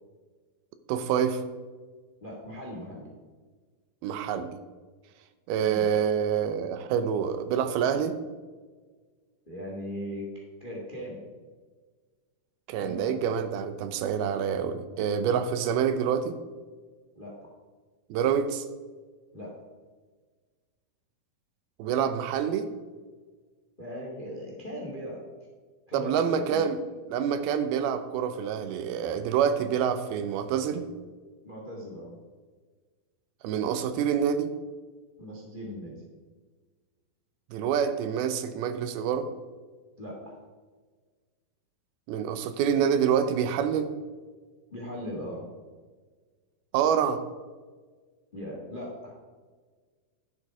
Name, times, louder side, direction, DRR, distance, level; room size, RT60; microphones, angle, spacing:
voice 1, 0.9-1.4 4.0-4.5 5.5-8.2 12.7-16.4 18.1-18.7 21.8-22.7 25.9-26.8 27.1-30.9 33.4-34.5 37.5-39.3 42.1-43.9 46.7-47.2, right 8 dB, 80° right, 10 dB, 2.6 m, -27 dB
voice 2, 2.2-3.1 5.6-5.9 9.5-10.3 10.6-11.3 12.8-13.3 17.1-17.5 19.3-19.5 23.8-25.2 25.9-26.6 31.4-32.2 35.2-36.0 40.0-40.3 44.7-45.5 48.3-49.2, equal, 25° left, -2 dB, 1.1 m, -39 dB
11.0 x 7.6 x 4.7 m, 1.4 s
omnidirectional pair, 4.4 m